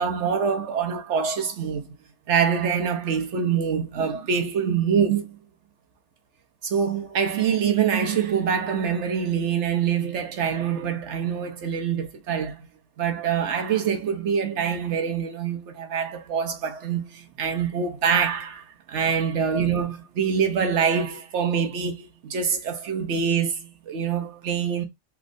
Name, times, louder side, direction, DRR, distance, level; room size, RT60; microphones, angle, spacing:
voice 1, 0.0-1.9 2.3-5.4 6.6-12.7 13.0-24.8, right 7 dB, 75° right, 1.1 m, -25 dB
3.5 x 3.1 x 2.6 m
omnidirectional pair, 1.2 m